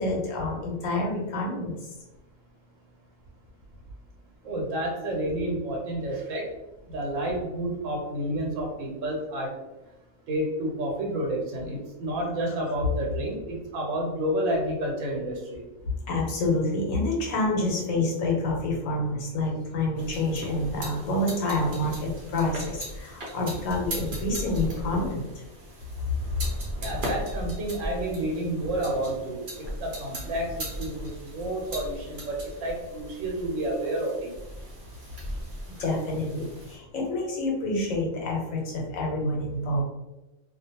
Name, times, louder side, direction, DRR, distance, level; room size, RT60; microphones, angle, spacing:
voice 1, 0.0-1.7 16.1-21.9 22.3-25.2 35.8-36.5 36.9-39.8, left 2 dB, 80° left, -2 dB, 1.1 m, -27 dB
voice 2, 4.4-6.5 6.9-9.6 10.3-15.6 26.8-29.5 29.8-34.3, right 1 dB, 75° right, -1 dB, 1.1 m, -30 dB
sound 1, 20.0-36.8, equal, 50° right, 0.7 m, -37 dB
2.4 x 2.1 x 2.8 m, 1.0 s
omnidirectional pair, 1.4 m